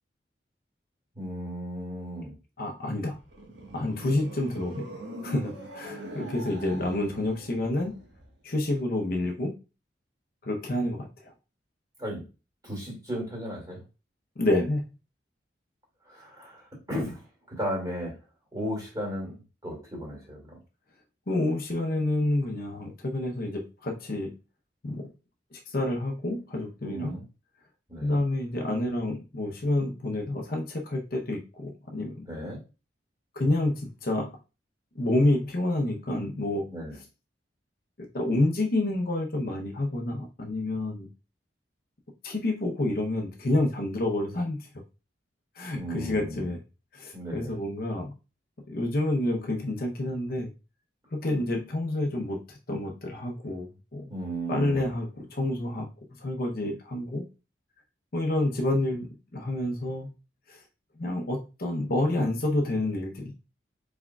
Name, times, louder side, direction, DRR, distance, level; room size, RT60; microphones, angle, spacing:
voice 1, 1.2-2.3 12.0-12.2 12.6-13.8 16.1-18.1 18.5-20.6 26.8-27.2 27.9-28.2 32.3-32.6 36.7-37.0 45.7-46.4 47.1-47.6 54.1-54.9, equal, 20° right, -2 dB, 2.2 m, -35 dB
voice 2, 2.6-3.2 3.7-8.0 8.4-9.5 10.4-11.3 14.4-14.9 21.3-24.3 24.8-25.1 25.5-27.2 28.0-32.2 33.4-34.3 35.0-36.7 38.0-41.1 42.2-44.6 45.6-46.6 46.9-48.1 48.7-50.5 51.1-54.1 54.5-55.9 56.2-57.2 58.1-60.1 60.5-60.6 61.0-63.3, left 1 dB, 50° left, 2 dB, 0.7 m, -28 dB
sound 1, 3.0-8.3, right 1 dB, 70° right, 1.3 m, -42 dB
4.8 x 4.2 x 2.3 m, 0.30 s
head